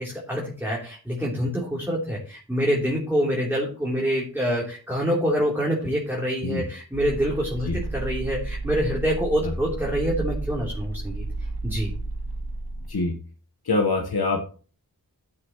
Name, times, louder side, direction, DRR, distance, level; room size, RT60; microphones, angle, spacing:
voice 1, 0.0-11.2 11.6-11.9, equal, 5° right, -4 dB, 3.2 m, -26 dB
sound 1, 6.9-12.9, right 2 dB, 80° right, 2.0 m, -32 dB
voice 2, 13.7-14.4, left 3 dB, 75° left, 2 dB, 1.2 m, -24 dB
13.5 x 7.8 x 3.0 m, 0.40 s
wide cardioid pair, 45°, 38 cm